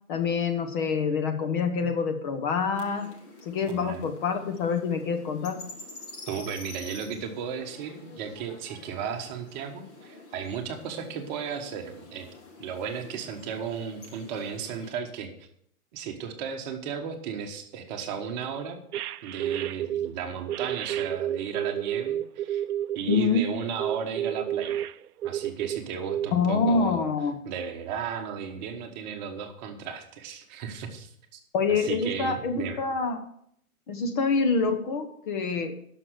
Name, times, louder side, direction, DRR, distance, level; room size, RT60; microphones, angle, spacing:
voice 1, 0.1-3.1 3.4-5.7 23.1-23.4 26.3-27.3 31.5-33.2 33.9-35.8, left 5 dB, 35° left, 6 dB, 1.1 m, -26 dB
sound 1, 2.7-14.9, left 2 dB, 10° left, 0.5 m, -48 dB
voice 2, 3.7-4.1 6.3-12.3 12.6-15.5 15.9-18.8 19.2-22.6 22.9-24.9 25.2-27.0 27.4-31.4 31.7-32.8, right 7 dB, 30° right, 4 dB, 1.4 m, -35 dB
sound 2, 18.9-20.1 20.5-23.2 23.8-25.8 26.1-26.3, right 11 dB, 80° right, 0.6 m, -30 dB
11.5 x 6.4 x 6.4 m, 0.69 s
hypercardioid pair, 145°, 45 cm